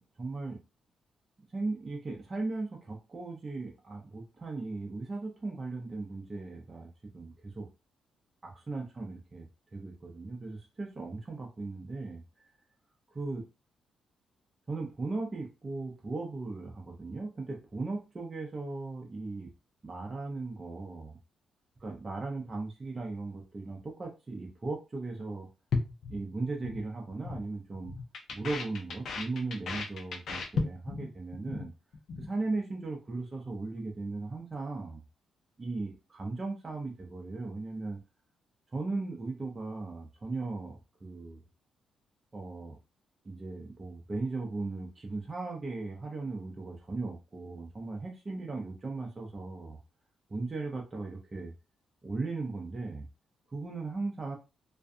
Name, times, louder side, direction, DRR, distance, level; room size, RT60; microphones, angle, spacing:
voice 1, 0.2-0.6 1.5-6.9 7.1-7.7 8.4-9.5 9.7-12.2 13.1-13.4 14.7-19.5 19.8-21.2 21.8-25.5 26.1-27.9 28.3-31.7 32.2-35.0 35.6-38.0 38.7-41.4 42.3-42.7 43.3-49.8 50.3-51.5 52.0-53.1 53.5-54.4, right 3 dB, 25° right, 0 dB, 0.4 m, -37 dB
sound 1, 25.7-26.8 27.1-27.4 27.7-31.1 31.3-31.7 31.9-32.3, left 4 dB, 60° left, 0.5 m, -35 dB
2.4 x 2.2 x 2.5 m, 0.29 s
cardioid pair, 135°, 0 cm